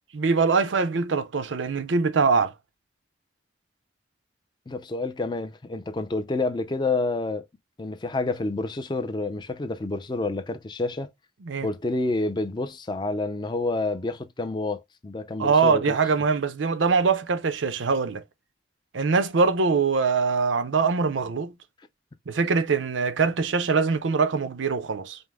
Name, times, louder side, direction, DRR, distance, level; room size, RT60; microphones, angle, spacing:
voice 1, 0.1-2.5 11.4-11.7 15.4-18.2 18.9-21.5 22.3-25.2, right 4 dB, 85° right, 0.6 m, -23 dB
voice 2, 4.7-7.5 7.8-11.1 11.6-16.0, left 2 dB, 25° left, 0.4 m, -28 dB
5.3 x 2.0 x 3.4 m
head